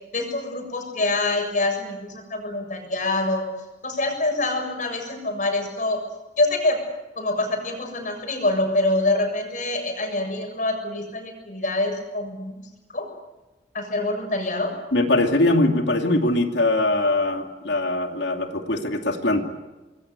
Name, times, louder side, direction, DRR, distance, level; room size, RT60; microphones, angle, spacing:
voice 1, 0.1-3.5 3.8-6.0 6.4-6.8 7.2-12.6 12.9-13.1 13.7-14.7, left 2 dB, 45° left, 4 dB, 7.3 m, -25 dB
voice 2, 14.9-19.4, left 2 dB, 75° left, 4 dB, 2.8 m, -21 dB
26.5 x 21.5 x 8.4 m, 1.1 s
head